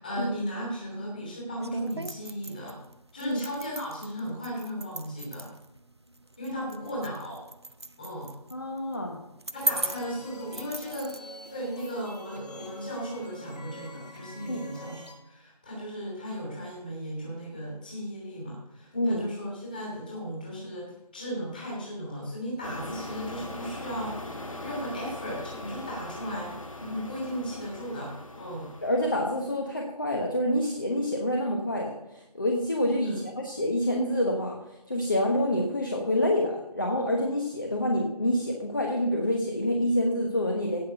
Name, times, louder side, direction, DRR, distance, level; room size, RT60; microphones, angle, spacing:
voice 1, 0.0-2.8 3.1-5.5 6.4-7.4 8.0-8.3 9.5-11.1 11.5-28.7 33.0-33.2, equal, 15° left, -5 dB, 2.8 m, -36 dB
sound 1, 1.6-11.2, right 1 dB, 40° right, 0.6 m, -38 dB
voice 2, 8.5-9.2 14.5-14.6 18.9-19.3 28.8-34.6 34.9-40.8, left 1 dB, 30° left, 1 dB, 1.2 m, -27 dB
sound 2, 9.5-15.1, equal, 80° left, 5.1 m, -44 dB
sound 3, 22.6-29.7, left 1 dB, 55° left, 1.9 m, -40 dB
16.5 x 6.0 x 6.8 m, 0.94 s
figure-of-eight pair, 180°, 21 cm